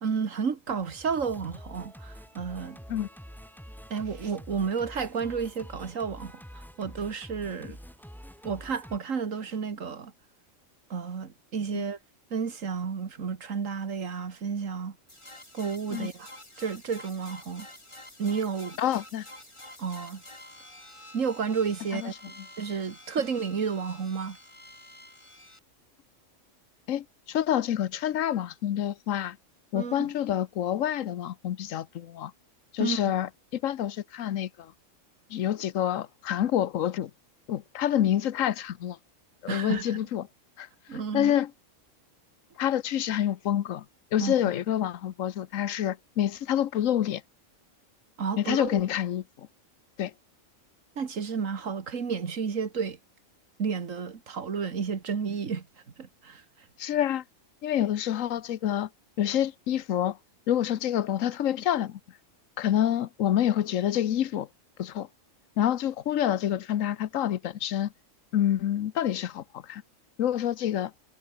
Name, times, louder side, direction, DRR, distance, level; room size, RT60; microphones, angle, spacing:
voice 1, 0.0-2.8 3.9-7.8 8.4-10.1 10.9-12.0 12.3-15.0 15.5-16.3 16.6-17.7 18.2-18.8 19.8-20.2 21.1-22.1 22.6-24.4 29.7-30.1 32.8-33.0 39.5-40.0 40.9-41.3 44.2-44.3 48.2-48.8 51.0-53.0 53.6-55.6 56.0-56.4, right 6 dB, 85° right, 2.1 m, -31 dB
Singing, 0.7-9.0, equal, ahead, 2.6 m, -47 dB
sound 1, 15.1-25.6, left 1 dB, 20° left, 4.4 m, -49 dB
voice 2, 18.8-19.3 22.0-22.1 26.9-29.4 29.7-32.3 32.7-34.7 35.3-37.1 37.5-39.0 39.4-40.3 40.6-41.5 42.6-43.8 44.1-47.2 48.4-49.5 50.0-50.1 56.8-57.2 57.6-58.9 59.2-60.2 60.5-62.0 62.6-64.5 64.8-65.1 65.6-67.9 68.3-69.8 70.2-70.9, left 11 dB, 85° left, 1.2 m, -27 dB
omnidirectional pair, 1.3 m